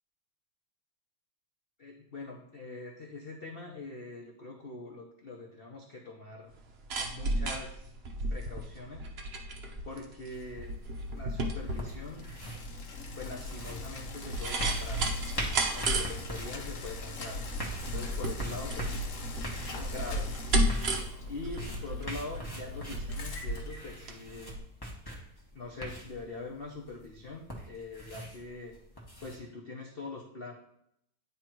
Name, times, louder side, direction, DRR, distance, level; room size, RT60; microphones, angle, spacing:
voice 1, 1.8-6.5 6.9-7.9 8.3-9.0 9.8-10.7 11.1-12.3 13.2-15.1 15.7-17.4 17.9-19.1 19.6-20.3 21.2-24.6 25.5-28.8 29.2-30.5, left 3 dB, 85° left, 0 dB, 0.5 m, -43 dB
sound 1, 6.5-24.2 24.5-24.6, right 1 dB, 65° right, 0.6 m, -34 dB
sound 2, 10.3-29.4, equal, 20° left, 0.7 m, -43 dB
Bicycle, 11.3-24.5, left 2 dB, 55° left, 0.9 m, -41 dB
9.5 x 3.4 x 4.5 m, 0.75 s
omnidirectional pair, 2.2 m